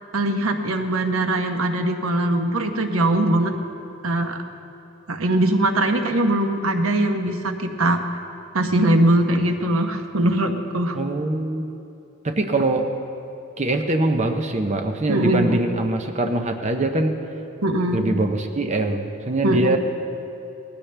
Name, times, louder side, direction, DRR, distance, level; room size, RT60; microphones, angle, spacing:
voice 1, 0.1-3.5 4.0-4.4 5.1-8.0 8.5-11.0 15.1-15.6 17.6-18.0 19.4-19.8, right 1 dB, 80° right, 5 dB, 1.0 m, -21 dB
voice 2, 10.9-11.7 12.2-12.9 13.6-17.2 17.9-19.8, right 2 dB, 35° right, 4 dB, 0.7 m, -23 dB
19.0 x 15.5 x 3.4 m, 2.8 s
head